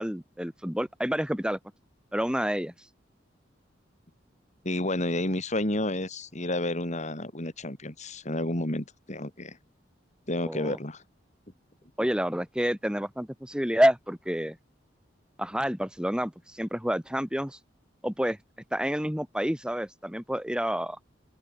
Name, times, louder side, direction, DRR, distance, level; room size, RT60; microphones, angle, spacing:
voice 1, 0.0-1.6 2.1-2.7 10.4-10.8 12.0-14.6 15.4-17.6 18.0-18.4 18.7-21.0, equal, 5° right, 2.9 m, -28 dB
voice 2, 4.6-9.6 10.3-11.0, left 1 dB, 40° left, 4.1 m, -30 dB
open air
head